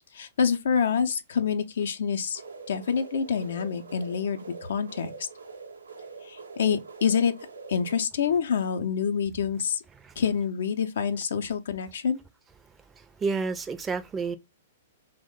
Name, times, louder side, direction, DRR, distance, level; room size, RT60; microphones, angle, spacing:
voice 1, 0.1-2.4 2.7-5.1 6.2-7.3 7.7-9.8 10.2-12.2, left 7 dB, 65° left, 0.5 m, -27 dB
sound 1, 2.3-8.0, right 4 dB, 80° right, 0.6 m, -44 dB
voice 2, 13.2-14.4, right 4 dB, 15° right, 0.4 m, -29 dB
3.0 x 2.1 x 3.5 m
figure-of-eight pair, 110°, 0 cm